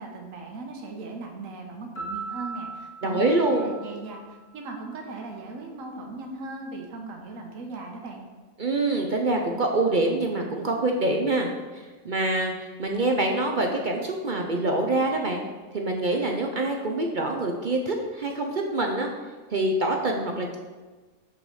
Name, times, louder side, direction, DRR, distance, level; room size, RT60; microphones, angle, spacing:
voice 1, 0.0-8.2, right 3 dB, 65° right, 2 dB, 1.4 m, -38 dB
Piano, 1.9-4.8, right 4 dB, 60° left, 2.0 m, -38 dB
voice 2, 3.0-3.7 8.6-11.5 11.7-15.4 15.7-19.1 19.5-20.6, right 2 dB, 45° right, 2 dB, 0.6 m, -25 dB
6.5 x 4.9 x 6.2 m, 1.3 s
omnidirectional pair, 1.5 m